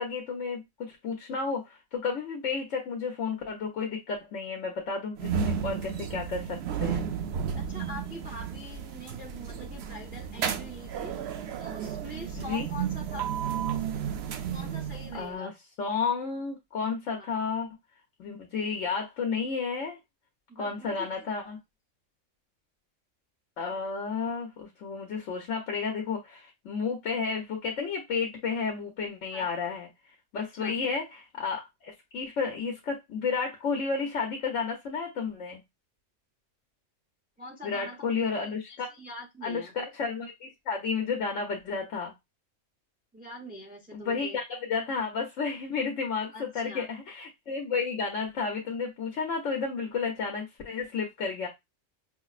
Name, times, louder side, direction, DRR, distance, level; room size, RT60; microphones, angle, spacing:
voice 1, 0.0-7.0 12.4-12.6 15.1-15.5 15.8-17.7 18.2-20.0 20.6-21.6 23.6-29.9 30.3-35.6 37.6-38.9 39.4-42.1 43.9-51.5, left 5 dB, 75° left, 1.2 m, -32 dB
sound 1, 5.2-15.3, right 8 dB, 65° right, 0.7 m, -33 dB
voice 2, 7.6-11.2 11.6-13.3 14.5-15.5 17.2-17.3 20.5-21.1 29.3-29.5 30.4-30.8 37.4-39.7 43.1-44.4 46.3-46.9, left 1 dB, 10° right, 0.5 m, -44 dB
5.6 x 2.0 x 2.4 m
omnidirectional pair, 1.3 m